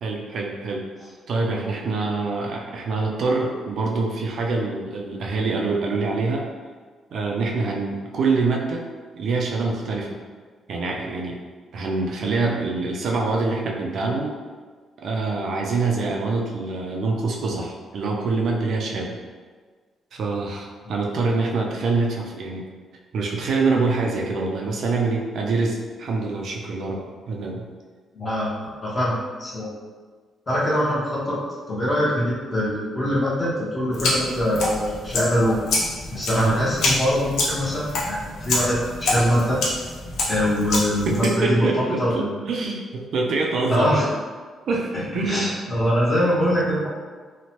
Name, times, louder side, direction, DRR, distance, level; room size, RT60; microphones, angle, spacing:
voice 1, 0.0-0.9 1.3-6.5 7.1-8.8 9.1-10.2 10.7-11.4 11.7-14.3 15.0-19.2 20.1-22.7 23.1-27.7 36.3-36.6 41.1-44.1 44.7-45.5, right 3 dB, 55° right, 0 dB, 0.3 m, -25 dB
voice 2, 28.1-28.5 28.8-29.7 30.5-31.4 31.7-35.6 36.1-39.6 40.3-42.3 43.7-44.1 44.9-46.9, equal, 20° left, -7 dB, 0.7 m, -23 dB
sound 1, 33.9-41.3, left 2 dB, 65° left, 0.5 m, -27 dB
2.9 x 2.0 x 2.9 m, 1.5 s
cardioid pair, 160°, 0 cm